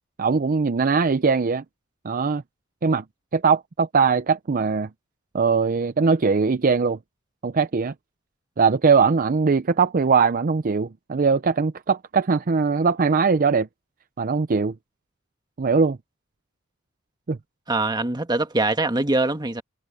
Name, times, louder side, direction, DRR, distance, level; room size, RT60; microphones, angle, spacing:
voice 1, 0.2-1.6 2.0-2.4 2.8-3.0 3.3-4.9 5.3-7.0 7.4-7.9 8.6-13.7 14.2-14.7 15.6-16.0 17.3-17.4, right 5 dB, 45° right, 0.5 m, -21 dB
voice 2, 17.7-19.6, right 2 dB, 20° right, 1.4 m, -23 dB
head